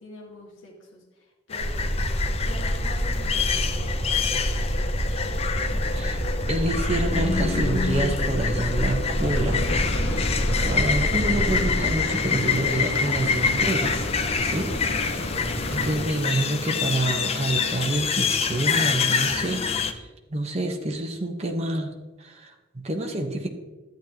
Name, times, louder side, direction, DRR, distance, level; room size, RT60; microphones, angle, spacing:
voice 1, 0.0-2.0 2.4-4.9 5.9-6.7, left 1 dB, 90° left, -1 dB, 2.0 m, -45 dB
sound 1, 1.5-19.9, left 6 dB, 30° left, 0.5 m, -27 dB
sound 2, 1.6-11.9, equal, 55° right, 1.2 m, -27 dB
voice 2, 6.5-14.1 14.4-15.3 15.7-19.6 19.9-21.9 22.2-23.5, right 1 dB, 35° right, 2 dB, 1.1 m, -28 dB
sound 3, 9.1-16.0, left 1 dB, 60° left, 1.4 m, -31 dB
12.0 x 9.4 x 3.0 m, 1.2 s
head